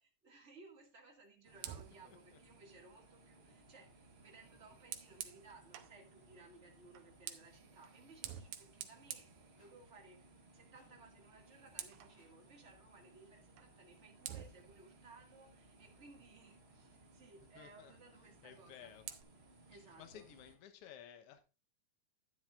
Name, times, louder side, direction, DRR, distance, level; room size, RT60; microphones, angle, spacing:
voice 1, 0.0-9.3 9.6-10.3 10.5-18.9 19.7-20.2, right 3 dB, 25° right, 2.0 m, -60 dB
sound 1, 1.4-20.5, right 2 dB, 45° right, 0.8 m, -64 dB
Fire, 1.5-6.0 6.9-10.2 10.5-10.8 11.1-12.2 13.6-13.7 14.2-16.6 18.4-19.2, right 11 dB, 90° right, 2.3 m, -51 dB
voice 2, 2.0-2.4 17.5-17.9 18.4-19.0 19.7-21.4, left 9 dB, 60° left, 1.8 m, -56 dB
sound 2, 8.2-8.6 9.5-9.9 10.7-11.1 12.1-12.5, left 3 dB, 85° left, 3.6 m, -75 dB
11.0 x 10.0 x 2.5 m
omnidirectional pair, 3.4 m